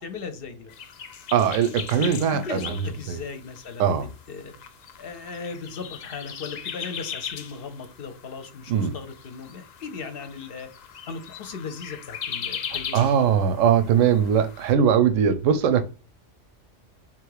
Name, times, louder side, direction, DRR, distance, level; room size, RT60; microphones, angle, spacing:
voice 1, 0.0-0.7 2.0-4.0 4.3-4.5 5.0-10.7 11.1-13.1, left 5 dB, 55° left, 0.7 m, -37 dB
sound 1, 0.7-14.7, left 8 dB, 75° left, 0.4 m, -39 dB
voice 2, 1.3-2.7 3.1-3.2 3.8-4.1 8.7-8.9 12.9-15.8, right 8 dB, 85° right, 1.0 m, -20 dB
3.7 x 3.0 x 4.6 m
omnidirectional pair, 1.3 m